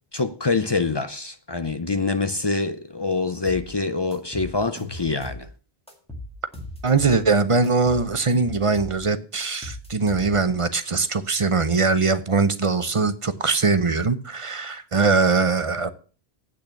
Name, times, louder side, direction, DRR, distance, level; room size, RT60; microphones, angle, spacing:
voice 1, 0.1-5.5, left 3 dB, 35° left, 0.4 m, -25 dB
sound 1, 3.4-3.7 4.1-5.5 5.9-7.2 7.6-9.0 9.4-10.6, left 1 dB, 5° left, 2.1 m, -38 dB
voice 2, 6.8-15.9, right 4 dB, 35° right, 0.7 m, -21 dB
8.5 x 6.4 x 7.0 m
omnidirectional pair, 1.1 m